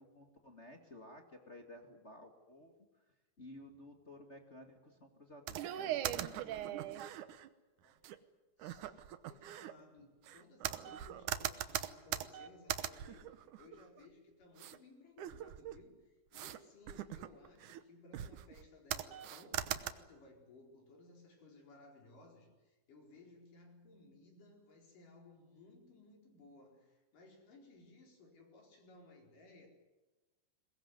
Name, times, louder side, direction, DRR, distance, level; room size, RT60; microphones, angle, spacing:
voice 1, 0.0-3.0 3.4-7.2, left 1 dB, 30° left, 3 dB, 1.3 m, -55 dB
sound 1, 5.5-7.5 8.0-8.2 8.6-9.7 10.3-14.1 14.6-14.8 15.2-15.8 16.3-16.6 16.9-17.8 18.1-18.6 18.9-19.9, right 12 dB, 70° right, 2.1 m, -40 dB
voice 2, 8.6-29.7, left 2 dB, 55° left, 2 dB, 6.0 m, -60 dB
22.0 x 21.0 x 9.5 m, 1.2 s
omnidirectional pair, 4.5 m